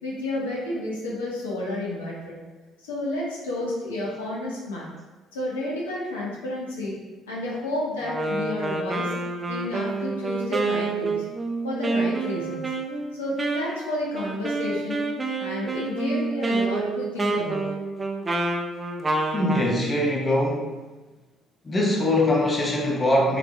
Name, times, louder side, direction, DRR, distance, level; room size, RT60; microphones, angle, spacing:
voice 1, 0.0-2.4 2.8-4.9 5.3-7.0 7.3-9.1 9.5-11.2 11.6-12.7 13.1-15.1 15.4-17.7, left 1 dB, 85° left, -5 dB, 0.8 m, -31 dB
Wind instrument woodwind instrument, 8.0-19.8, right 3 dB, 30° right, 0.5 m, -28 dB
voice 2, 19.3-20.9 21.6-23.4, left 1 dB, 30° left, -1 dB, 0.8 m, -22 dB
3.3 x 3.3 x 2.4 m, 1.2 s
hypercardioid pair, 50°, 0 cm